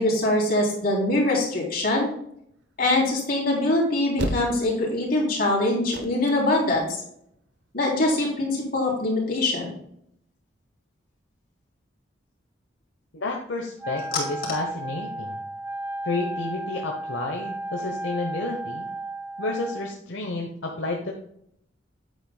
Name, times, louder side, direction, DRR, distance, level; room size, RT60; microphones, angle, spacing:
voice 1, 0.0-2.1 2.8-7.0 7.7-9.7, left 2 dB, 50° left, -3 dB, 3.3 m, -23 dB
sound 1, 2.5-7.6, right 1 dB, 60° right, 1.0 m, -34 dB
voice 2, 13.1-15.4 16.0-18.9 19.4-21.1, left 2 dB, 75° left, 1 dB, 1.0 m, -31 dB
Wind instrument woodwind instrument, 13.8-20.0, right 1 dB, 10° right, 0.8 m, -34 dB
9.1 x 8.2 x 2.3 m, 0.70 s
head